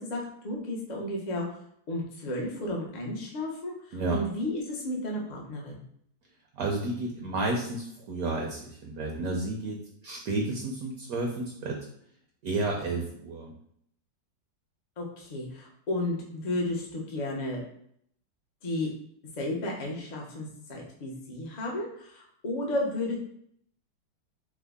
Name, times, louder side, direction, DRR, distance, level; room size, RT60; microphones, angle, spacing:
voice 1, 0.0-1.4 1.9-5.8 15.0-17.6 18.6-18.9 19.4-23.2, left 1 dB, 75° left, -1 dB, 0.4 m, -33 dB
voice 2, 6.5-9.8 10.0-11.8 12.4-13.5, right 2 dB, 70° right, 0 dB, 0.9 m, -31 dB
3.5 x 2.0 x 3.5 m, 0.68 s
omnidirectional pair, 1.9 m